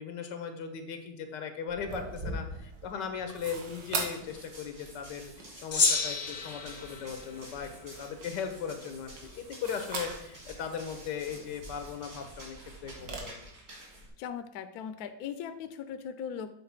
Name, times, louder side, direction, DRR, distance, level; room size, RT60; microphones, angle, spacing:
voice 1, 0.0-13.4, left 7 dB, 90° left, 7 dB, 1.6 m, -38 dB
sound 1, 1.7-13.2, right 3 dB, 90° right, 1.9 m, -43 dB
Run, 4.1-14.1, right 1 dB, 60° right, 3.3 m, -50 dB
Gong, 5.7-8.3, left 4 dB, 50° left, 0.6 m, -31 dB
voice 2, 14.2-16.6, left 8 dB, 70° left, 10 dB, 1.0 m, -39 dB
7.6 x 4.0 x 5.7 m, 0.74 s
omnidirectional pair, 1.9 m